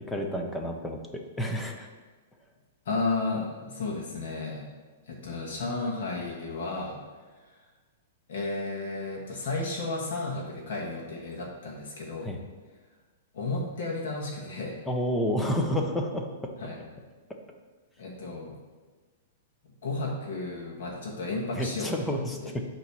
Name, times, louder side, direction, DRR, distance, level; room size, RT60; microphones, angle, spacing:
voice 1, 0.1-1.9 12.2-12.4 14.9-16.5 17.3-17.4 21.5-22.7, equal, 5° left, 2 dB, 0.5 m, -30 dB
voice 2, 2.8-4.7 5.1-7.0 8.3-12.3 13.3-14.8 16.6-16.8 18.0-18.5 19.8-21.9 22.4-22.5, left 3 dB, 60° left, -2 dB, 1.3 m, -33 dB
8.4 x 3.0 x 6.0 m, 1.3 s
hypercardioid pair, 180°, 0 cm